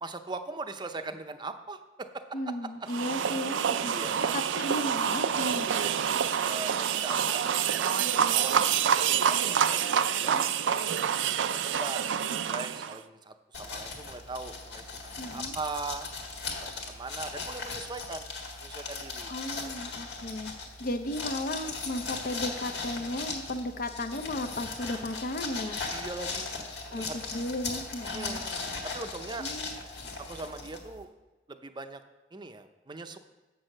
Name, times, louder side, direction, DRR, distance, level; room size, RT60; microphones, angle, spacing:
voice 1, 0.0-2.4 3.9-4.4 5.8-6.1 6.5-6.7 7.0-8.0 8.3-10.4 11.2-12.1 12.4-16.1 16.6-18.3 18.6-19.3 19.6-19.7 25.9-26.5 26.9-27.2 28.1-28.6 28.8-29.5 30.2-31.1 31.5-32.0 32.3-33.2, right 3 dB, 25° right, 8 dB, 0.6 m, -40 dB
voice 2, 2.3-3.9 4.3-5.7 10.2-10.5 15.2-15.6 19.3-20.5 20.8-25.8 26.9-27.1 27.3-28.4 29.4-29.8, left 1 dB, 50° left, 7 dB, 0.6 m, -35 dB
sound 1, 2.9-13.0, right 8 dB, 90° right, 0.4 m, -27 dB
sound 2, 13.5-31.0, left 4 dB, 70° left, 1.7 m, -38 dB
8.1 x 6.3 x 6.5 m, 1.2 s
head